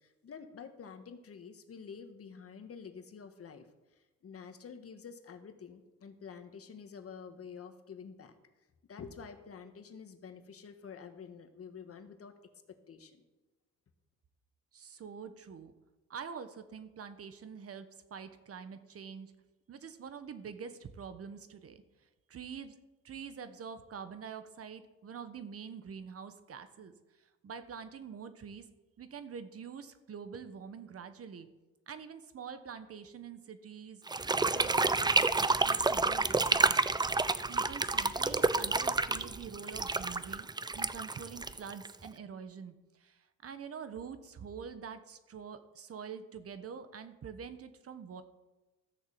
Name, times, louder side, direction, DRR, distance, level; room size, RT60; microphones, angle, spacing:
voice 1, 0.0-3.7 4.2-8.4 8.9-12.3 12.7-13.2, left 6 dB, 50° left, 8 dB, 1.6 m, -48 dB
voice 2, 14.7-15.7 16.1-19.3 19.7-21.8 22.3-22.8 23.0-26.9 27.2-28.7 29.0-31.5 31.9-34.0 34.4-36.8 37.5-48.2, right 6 dB, 50° right, 10 dB, 1.2 m, -46 dB
sound 1, 34.1-42.1, right 3 dB, 15° right, 0.6 m, -29 dB
13.5 x 6.5 x 7.5 m, 1.1 s
cardioid pair, 90°, 30 cm